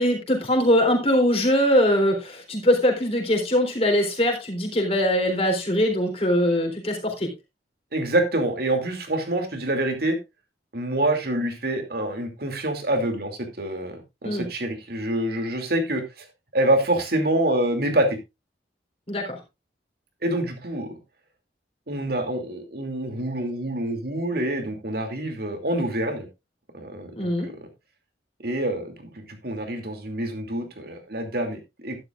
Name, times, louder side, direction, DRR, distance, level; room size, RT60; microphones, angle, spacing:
voice 1, 0.0-7.3 14.2-14.5 19.1-19.4 27.2-27.5, equal, 35° left, 2 dB, 3.8 m, -22 dB
voice 2, 7.9-10.2 10.7-16.2 16.5-18.2 20.2-20.9 21.9-26.3 26.7-27.5 28.4-32.0, right 1 dB, 60° right, 5 dB, 2.7 m, -26 dB
12.0 x 11.0 x 2.5 m, 0.24 s
head